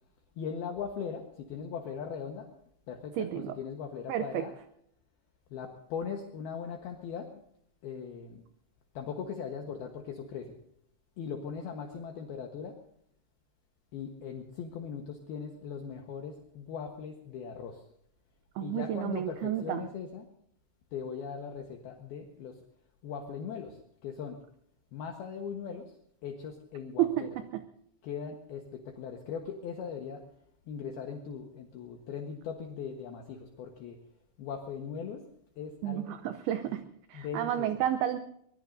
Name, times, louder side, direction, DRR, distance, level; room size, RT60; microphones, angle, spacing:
voice 1, 0.4-2.5 2.9-4.5 5.5-7.3 7.8-8.4 8.9-10.6 11.2-12.8 13.9-17.8 18.6-20.3 20.9-22.6 23.0-24.4 24.9-25.9 26.2-27.3 28.0-30.3 30.7-34.0 34.4-35.2 35.6-36.2 37.1-37.7, left 6 dB, 65° left, 3 dB, 2.7 m, -39 dB
voice 2, 3.2-3.5 4.1-4.5 18.6-19.8 27.0-27.6 35.8-36.8 37.1-38.2, right 12 dB, 85° right, 9 dB, 2.2 m, -31 dB
24.0 x 20.5 x 2.7 m, 0.71 s
omnidirectional pair, 5.5 m